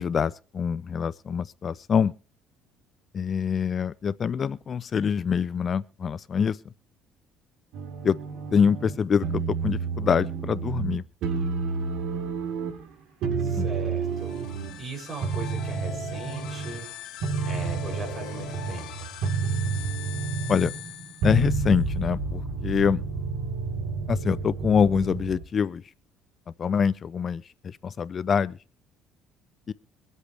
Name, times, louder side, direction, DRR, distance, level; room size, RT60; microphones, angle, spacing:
voice 1, 0.0-2.1 3.1-6.6 8.0-8.2 8.5-11.0 13.6-13.7 20.5-20.7 21.2-23.0 24.1-25.8 26.6-28.6 29.7-29.8, left 7 dB, 40° left, 0.5 m, -25 dB
sound 1, 7.7-9.0 9.2-11.0 11.2-12.9 13.2-14.8 15.2-16.8 17.2-25.4, right 4 dB, 70° right, 3.8 m, -30 dB
voice 2, 13.4-14.3 14.8-16.9 17.5-19.1, right 4 dB, 35° right, 7.2 m, -38 dB
sound 2, 14.0-21.7, left 9 dB, 70° left, 2.3 m, -41 dB
24.0 x 8.3 x 3.4 m
supercardioid pair, 90°, 0 cm